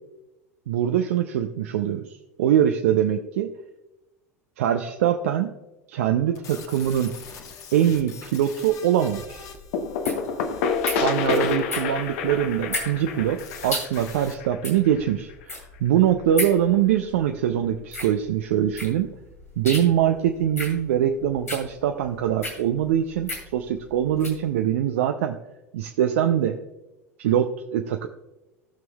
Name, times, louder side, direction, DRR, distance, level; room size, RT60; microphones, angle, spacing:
voice 1, 0.7-3.5 4.6-5.5 5.9-7.1 7.7-9.4 11.0-15.3 15.8-19.1 19.6-25.4 25.7-26.6 27.2-28.1, right 10 dB, 60° right, 5 dB, 0.5 m, -23 dB
sound 1, 6.4-14.3, left 6 dB, 40° left, 1.2 m, -45 dB
sound 2, 9.0-24.4, left 1 dB, 90° left, 2.4 m, -35 dB
sound 3, 9.7-15.3, left 6 dB, 55° left, 0.9 m, -28 dB
18.0 x 6.1 x 2.3 m, 1.0 s
figure-of-eight pair, 75°, 8 cm